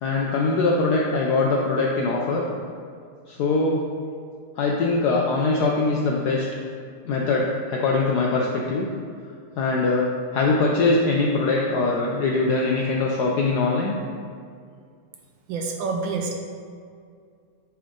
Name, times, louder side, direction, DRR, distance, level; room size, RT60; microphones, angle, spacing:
voice 1, 0.0-2.4 3.3-3.8 4.6-6.5 7.1-8.9 9.6-10.1 10.3-13.9, left 3 dB, 85° left, -1 dB, 0.8 m, -22 dB
voice 2, 15.5-16.3, right 4 dB, 75° right, 2 dB, 1.2 m, -27 dB
8.7 x 3.5 x 3.7 m, 2.2 s
omnidirectional pair, 2.4 m